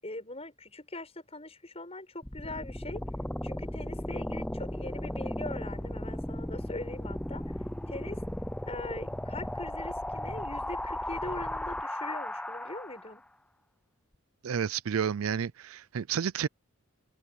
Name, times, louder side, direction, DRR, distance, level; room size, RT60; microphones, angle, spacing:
voice 1, 0.0-3.0 3.4-7.4 7.9-8.2 8.7-13.2, left 2 dB, 30° left, 7.2 m, -41 dB
sound 1, 2.2-13.2, left 1 dB, 5° left, 0.4 m, -36 dB
voice 2, 14.4-16.5, right 7 dB, 85° right, 0.5 m, -30 dB
head